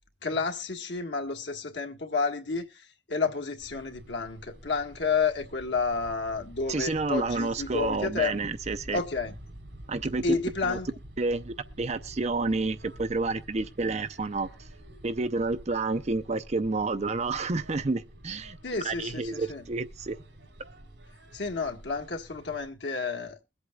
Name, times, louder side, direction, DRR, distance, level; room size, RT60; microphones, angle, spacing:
voice 1, 0.2-2.8 3.1-8.3 8.9-9.3 10.2-10.9 18.6-19.6 21.3-23.4, left 4 dB, 75° left, 1.8 m, -30 dB
sound 1, 3.6-22.7, right 1 dB, 80° right, 3.7 m, -48 dB
voice 2, 6.7-9.0 9.9-10.4 10.6-10.8 11.2-14.5 15.0-18.6 18.8-20.2, right 3 dB, 40° right, 0.6 m, -29 dB
22.5 x 8.1 x 2.4 m
head